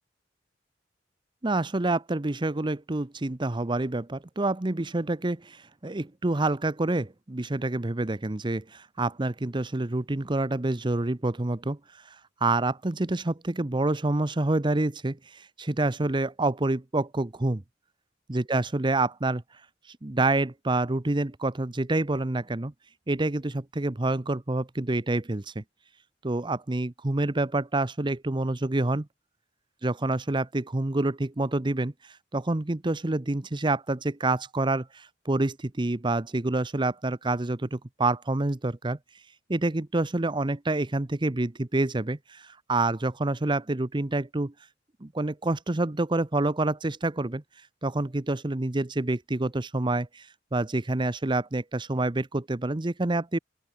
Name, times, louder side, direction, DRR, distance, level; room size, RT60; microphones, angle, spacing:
voice 1, 1.4-17.6 18.3-19.6 19.9-22.7 23.1-25.6 26.2-29.1 29.8-39.0 39.5-44.5 45.0-53.4, right 2 dB, 25° right, 0.8 m, -27 dB
open air
head